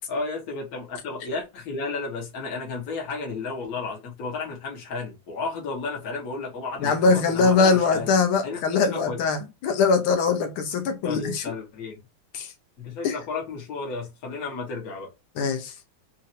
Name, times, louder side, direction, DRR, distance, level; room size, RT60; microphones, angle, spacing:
voice 1, 0.1-8.1 8.4-8.6 8.9-9.2 11.0-12.0 12.8-15.1, left 4 dB, 50° left, 1.6 m, -33 dB
voice 2, 6.8-11.4 12.3-12.5 13.0-13.1 15.4-15.7, left 4 dB, 90° left, 1.7 m, -22 dB
4.3 x 2.7 x 2.5 m
omnidirectional pair, 2.2 m